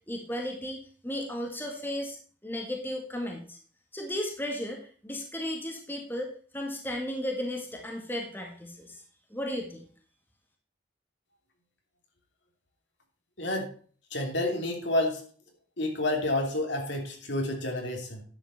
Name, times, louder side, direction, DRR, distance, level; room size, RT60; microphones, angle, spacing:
voice 1, 0.1-2.2 2.4-3.6 3.9-9.0 9.3-9.8, left 1 dB, 10° left, 1 dB, 1.8 m, -35 dB
voice 2, 13.4-13.7 14.1-15.2 15.8-18.2, left 1 dB, 70° left, 2 dB, 3.0 m, -29 dB
10.5 x 7.8 x 4.3 m, 0.43 s
head